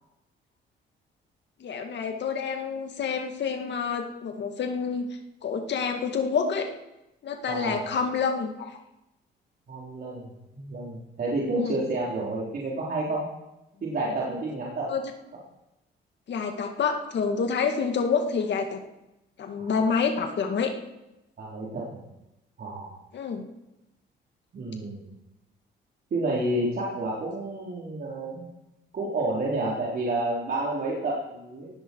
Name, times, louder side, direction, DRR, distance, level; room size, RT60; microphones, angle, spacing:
voice 1, 1.6-5.1 5.4-6.7 7.2-8.7 11.5-11.8 14.9-15.0 16.3-18.8 19.4-20.7 23.1-23.5, left 5 dB, 60° left, 4 dB, 2.0 m, -28 dB
voice 2, 7.5-7.9 9.7-13.3 13.8-14.9 19.6-19.8 21.4-22.0 22.6-23.0 24.5-25.0 26.1-28.5 28.9-31.7, right 2 dB, 50° right, -5 dB, 4.0 m, -30 dB
18.5 x 15.5 x 4.7 m, 0.95 s
cardioid pair, 90°, 20 cm